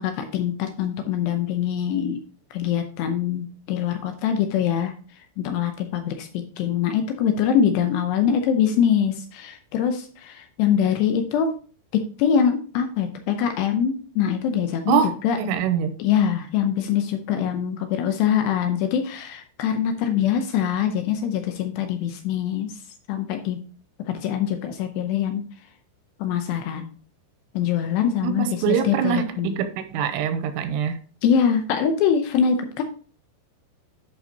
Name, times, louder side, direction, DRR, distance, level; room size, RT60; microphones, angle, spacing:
voice 1, 0.0-2.2 2.5-4.9 5.4-6.3 6.6-11.6 12.2-15.4 16.0-22.7 23.1-23.6 24.1-25.4 26.2-26.9 27.5-29.6 31.2-32.8, left 8 dB, 80° left, 6 dB, 2.6 m, -23 dB
voice 2, 15.4-15.9 28.2-30.9, right 8 dB, 85° right, 9 dB, 3.0 m, -24 dB
11.0 x 5.5 x 2.8 m, 0.40 s
omnidirectional pair, 5.4 m